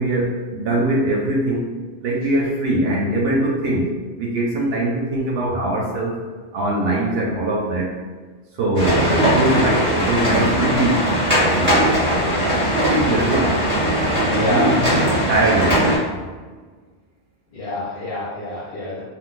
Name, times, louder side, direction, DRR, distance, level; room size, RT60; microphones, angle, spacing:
voice 1, 0.0-1.7 2.0-3.9 4.2-6.2 6.5-7.9 8.6-11.1 11.5-11.9 12.9-13.6 14.3-14.8 15.3-15.9, right 1 dB, 70° right, -2 dB, 0.8 m, -21 dB
sound 1, 8.7-16.0, equal, 10° right, 1.2 m, -19 dB
voice 2, 14.3-14.8 17.5-19.0, left 1 dB, 65° left, -9 dB, 0.9 m, -25 dB
2.5 x 2.4 x 3.7 m, 1.4 s
omnidirectional pair, 1.1 m